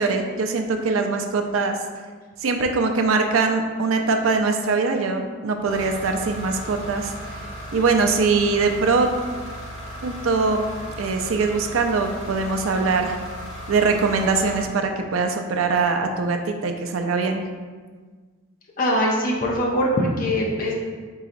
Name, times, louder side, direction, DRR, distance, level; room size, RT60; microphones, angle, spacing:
voice 1, 0.0-1.8 2.4-7.1 7.7-9.1 10.0-10.6 11.0-13.2 13.7-17.4, right 4 dB, 85° right, 5 dB, 0.5 m, -22 dB
sound 1, 5.7-14.7, equal, 80° left, 0.9 m, -36 dB
voice 2, 18.8-20.7, equal, 40° left, -2 dB, 0.6 m, -22 dB
4.7 x 3.9 x 2.5 m, 1.5 s
head